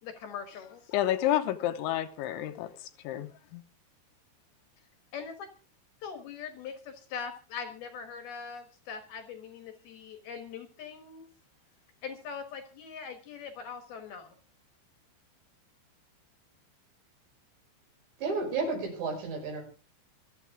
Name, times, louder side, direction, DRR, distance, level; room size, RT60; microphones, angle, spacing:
voice 1, 0.0-0.9 5.1-5.5 6.0-11.3 12.0-14.3, left 6 dB, 65° left, 7 dB, 2.8 m, -41 dB
voice 2, 0.9-3.6, left 13 dB, 80° left, 9 dB, 3.2 m, -30 dB
voice 3, 18.2-19.6, right 4 dB, 65° right, 2 dB, 7.8 m, -32 dB
25.5 x 9.6 x 3.6 m, 0.36 s
omnidirectional pair, 5.4 m